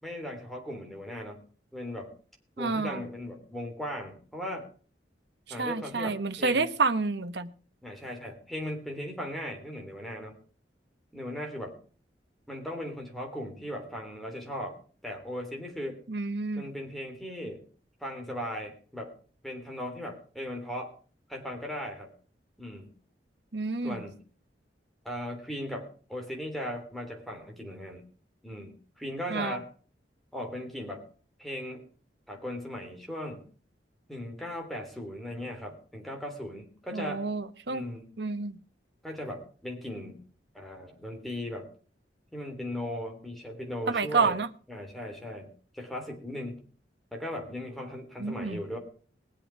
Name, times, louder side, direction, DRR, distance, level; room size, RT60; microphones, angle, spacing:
voice 1, 0.0-1.4 1.7-2.1 2.6-4.7 5.5-6.7 7.8-10.4 11.1-11.8 12.5-16.0 16.6-17.6 18.0-19.1 19.4-20.9 21.3-22.1 22.6-22.9 23.8-24.2 25.0-28.0 28.4-29.7 30.3-31.0 31.4-31.8 32.3-33.4 34.1-37.2 37.7-38.2 39.0-40.2 40.5-41.7 42.3-44.4 44.7-46.6 47.1-48.8, left 1 dB, ahead, 2 dB, 3.3 m, -38 dB
voice 2, 2.6-3.0 5.6-7.5 16.1-16.7 23.5-24.0 29.3-29.6 36.9-37.8 38.2-38.6 43.9-44.5 48.2-48.6, right 4 dB, 70° right, 11 dB, 1.1 m, -29 dB
21.0 x 7.8 x 4.6 m, 0.41 s
head